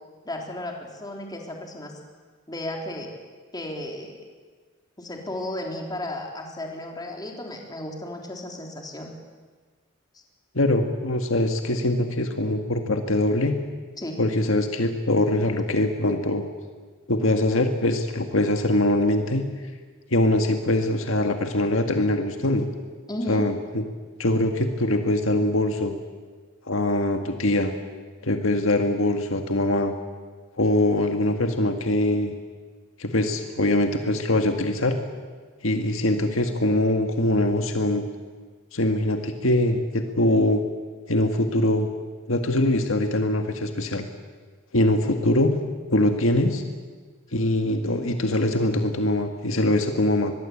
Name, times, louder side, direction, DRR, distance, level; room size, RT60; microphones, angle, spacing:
voice 1, 0.3-2.0 2.5-3.1 3.5-4.2 5.0-9.1 14.0-14.2 23.1-23.5, left 1 dB, 20° left, 2 dB, 3.6 m, -34 dB
voice 2, 10.6-13.6 14.2-16.5 17.1-19.5 20.1-22.7 23.3-23.8 24.2-25.9 26.7-27.7 28.2-29.9 30.6-32.3 33.0-35.0 35.6-38.0 38.7-40.6 41.1-41.9 42.3-44.0 44.7-45.6 45.9-46.6 47.3-50.3, left 1 dB, 70° left, 6 dB, 1.8 m, -23 dB
24.5 x 21.0 x 8.6 m, 1.5 s
head